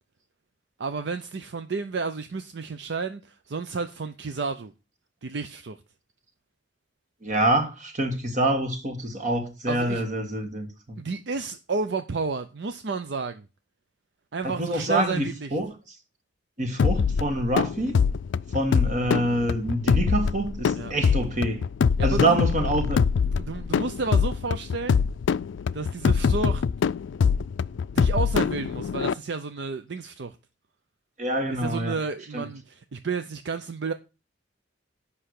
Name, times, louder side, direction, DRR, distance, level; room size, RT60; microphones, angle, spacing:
voice 1, 0.8-4.7 5.2-5.8 9.7-10.0 11.0-13.4 14.3-15.6 20.7-20.9 22.0-22.4 23.4-25.0 25.7-26.6 27.9-30.4 31.5-33.9, right 4 dB, 65° right, 0.6 m, -31 dB
voice 2, 7.2-11.0 14.4-15.7 16.6-18.0 18.5-21.6 22.0-23.0 31.2-31.9 32.3-32.4, right 1 dB, 40° right, 1.7 m, -26 dB
sound 1, 16.8-29.1, left 6 dB, 85° left, 0.4 m, -24 dB
7.8 x 5.7 x 6.5 m
head